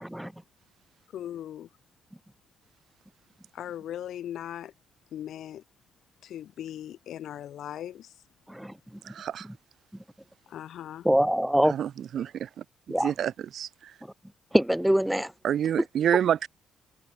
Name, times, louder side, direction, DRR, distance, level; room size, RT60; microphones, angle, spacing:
voice 1, 0.0-0.3 8.5-8.7 11.0-11.7 12.9-13.1 14.5-15.3, equal, 5° right, 0.5 m, -23 dB
voice 2, 1.1-1.7 3.5-4.7 5.1-5.6 6.2-8.1 10.5-11.1, left 11 dB, 70° left, 2.7 m, -38 dB
voice 3, 9.0-9.5 11.6-14.0 15.4-16.5, right 9 dB, 65° right, 0.9 m, -29 dB
cardioid pair, 90°, 0 cm